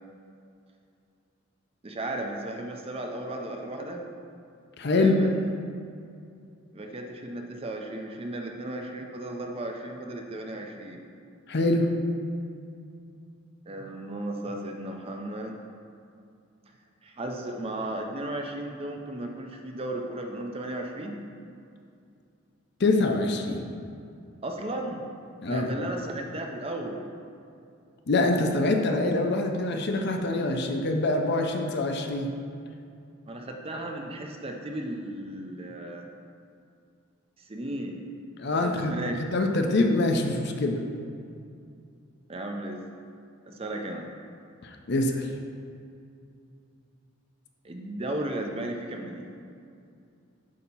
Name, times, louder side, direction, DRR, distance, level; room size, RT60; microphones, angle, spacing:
voice 1, 1.8-4.0 4.9-5.4 6.7-11.0 13.7-15.6 17.0-21.2 24.4-25.0 25.4-27.0 33.3-36.0 37.5-38.0 38.5-39.2 42.3-42.8 43.5-44.1 47.6-49.2, right 1 dB, 25° right, 2 dB, 0.5 m, -35 dB
voice 2, 4.8-5.1 11.5-11.9 22.8-23.6 25.4-25.7 28.1-32.3 38.4-38.9 39.3-40.8 44.6-45.3, left 2 dB, 50° left, 3 dB, 0.6 m, -25 dB
8.4 x 2.8 x 5.4 m, 2.5 s
head